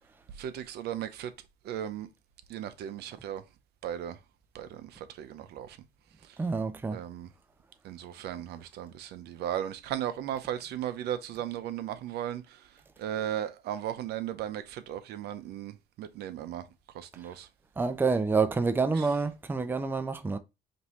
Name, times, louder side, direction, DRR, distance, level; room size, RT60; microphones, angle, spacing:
voice 1, 0.4-1.3 1.6-2.1 2.5-3.4 3.8-4.2 4.5-5.8 6.9-7.3 7.8-12.6 13.0-16.6 16.9-17.5 18.9-19.1, right 10 dB, 75° right, 0.7 m, -36 dB
voice 2, 6.4-7.0 17.8-20.4, right 4 dB, 10° right, 0.5 m, -28 dB
5.3 x 2.7 x 2.9 m
cardioid pair, 110°, 17 cm